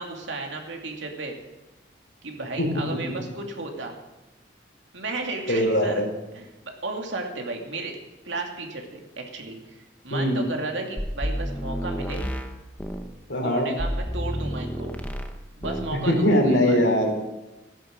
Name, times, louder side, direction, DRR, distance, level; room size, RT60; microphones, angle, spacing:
voice 1, 0.0-1.4 2.2-4.0 4.9-6.0 6.3-8.0 8.2-12.3 13.4-14.9 15.6-16.8, right 2 dB, 75° right, 2 dB, 2.5 m, -34 dB
voice 2, 5.5-6.1 10.1-10.4 13.3-13.7 16.1-17.2, equal, 70° left, 2 dB, 3.3 m, -21 dB
sound 1, 11.0-13.1 13.8-15.4 15.6-16.0, equal, 10° left, 0.9 m, -30 dB
15.0 x 10.0 x 6.5 m, 1.0 s
head